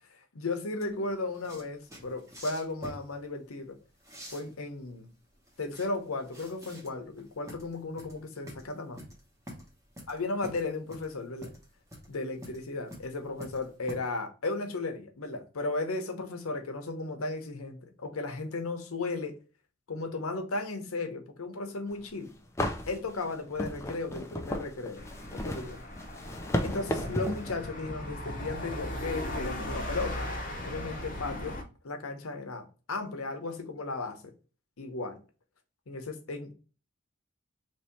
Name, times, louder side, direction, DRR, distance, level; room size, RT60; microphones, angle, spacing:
voice 1, 0.3-3.8 4.3-5.1 5.6-9.0 10.1-11.5 12.1-19.3 19.9-22.3 22.9-25.0 25.3-25.8 26.6-30.3 30.6-31.6 31.8-34.2 34.8-35.2 35.9-36.5, left 3 dB, 90° left, 0.8 m, -35 dB
sound 1, 0.8-13.9, equal, 15° right, 1.0 m, -48 dB
sound 2, 22.0-22.1 22.6-27.5, left 1 dB, 15° left, 0.3 m, -34 dB
sound 3, 25.0-31.6, left 1 dB, 40° left, 0.7 m, -38 dB
3.0 x 2.8 x 4.4 m
head